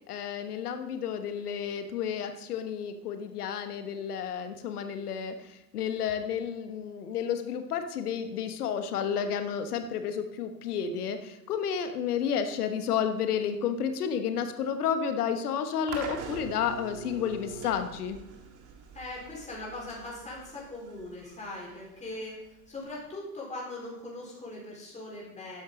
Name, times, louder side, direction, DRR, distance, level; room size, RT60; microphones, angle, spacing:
voice 1, 0.1-18.2, left 7 dB, 65° left, 8 dB, 1.3 m, -31 dB
sound 1, 15.9-23.0, right 5 dB, 40° right, 2.1 m, -44 dB
voice 2, 18.9-25.6, left 2 dB, 15° left, -4 dB, 4.4 m, -40 dB
12.5 x 10.5 x 3.8 m, 0.88 s
figure-of-eight pair, 75°, 49 cm